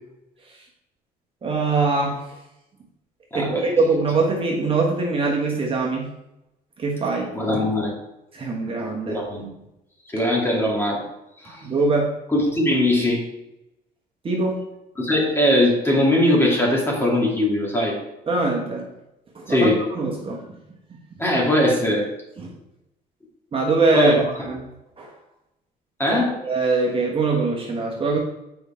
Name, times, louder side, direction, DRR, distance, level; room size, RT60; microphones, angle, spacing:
voice 1, 1.4-2.2 3.3-6.1 6.8-7.3 8.3-9.2 11.6-12.1 14.2-14.6 18.3-18.9 19.3-20.4 22.4-22.5 23.5-24.1 24.5-24.6 25.0-25.1 26.1-28.2, right 3 dB, 30° right, -1 dB, 1.3 m, -22 dB
voice 2, 3.3-3.6 7.3-7.9 9.1-9.5 10.1-11.0 11.4-11.7 12.3-13.2 15.0-17.9 19.5-19.8 21.2-22.0 23.9-24.3 26.0-26.3, left 1 dB, 15° left, -3 dB, 2.5 m, -20 dB
7.8 x 4.9 x 4.4 m, 0.91 s
cardioid pair, 110°, 17 cm